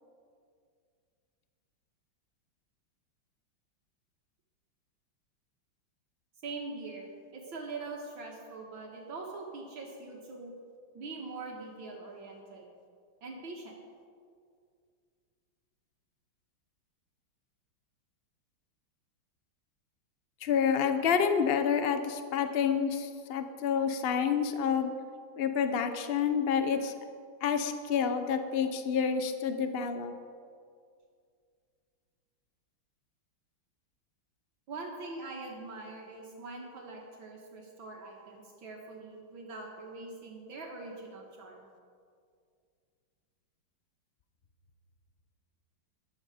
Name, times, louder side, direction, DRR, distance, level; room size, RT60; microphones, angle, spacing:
voice 1, 6.4-10.5 10.9-12.7 13.2-13.8 34.7-41.7, right 3 dB, 70° right, -1 dB, 2.1 m, -43 dB
voice 2, 20.4-24.9 25.4-26.9 27.4-30.1, left 7 dB, 80° left, 8 dB, 0.5 m, -28 dB
14.5 x 11.0 x 5.1 m, 2.2 s
omnidirectional pair, 2.3 m